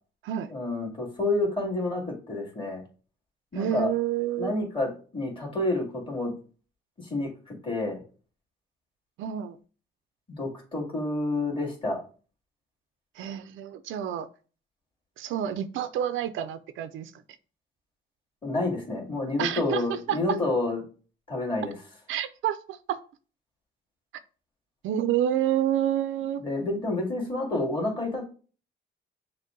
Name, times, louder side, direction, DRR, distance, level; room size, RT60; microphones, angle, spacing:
voice 1, 0.5-2.8 3.5-3.9 4.4-6.3 7.0-8.0 10.3-12.0 18.4-20.8 21.3-21.7 26.4-28.2, left 2 dB, 25° left, -1 dB, 2.1 m, -29 dB
voice 2, 3.5-4.5 9.2-9.6 13.2-14.3 15.2-17.1 19.4-20.2 22.1-23.0 24.8-26.4, right 11 dB, 80° right, 12 dB, 0.4 m, -28 dB
6.4 x 2.2 x 3.7 m, 0.38 s
cardioid pair, 90°, 20 cm